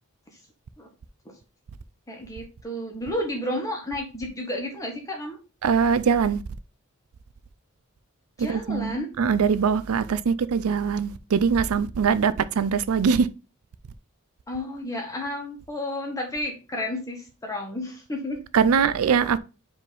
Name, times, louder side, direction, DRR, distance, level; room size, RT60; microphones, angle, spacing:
voice 1, 2.1-5.4 8.4-9.1 14.5-18.4, left 1 dB, 15° left, 1.5 m, -32 dB
voice 2, 5.6-6.4 8.4-13.3 18.5-19.4, right 6 dB, 80° right, 0.4 m, -22 dB
5.0 x 3.7 x 5.1 m
head